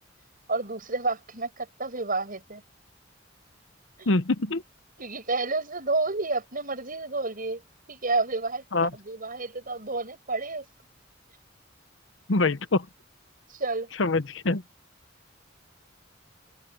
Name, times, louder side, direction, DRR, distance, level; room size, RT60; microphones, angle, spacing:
voice 1, 0.5-2.6 4.0-4.1 5.0-7.6 7.9-10.6 13.5-13.9, right 3 dB, 45° right, 6.6 m, -30 dB
voice 2, 4.1-4.6 8.7-8.9 12.3-12.9 14.0-14.6, left 3 dB, 70° left, 0.9 m, -24 dB
open air
head